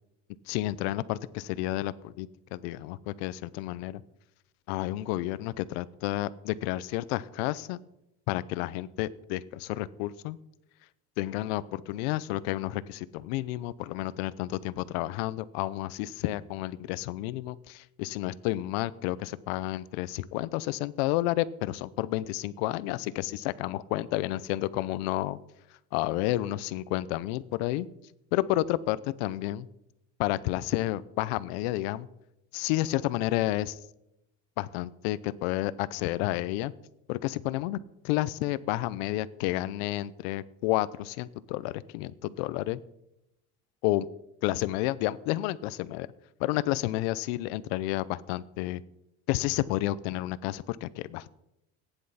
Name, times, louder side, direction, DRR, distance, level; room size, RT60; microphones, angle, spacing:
voice 1, 0.5-4.0 4.7-7.8 8.3-10.4 11.2-25.4 25.9-27.9 28.3-29.7 30.2-32.1 32.5-33.8 34.6-36.7 37.1-37.8 38.0-42.8 43.8-44.1 44.4-46.1 46.4-48.8 49.3-51.3, left 16 dB, 85° left, 18 dB, 0.7 m, -30 dB
15.5 x 10.0 x 5.6 m, 0.85 s
cardioid pair, 165°, 30 cm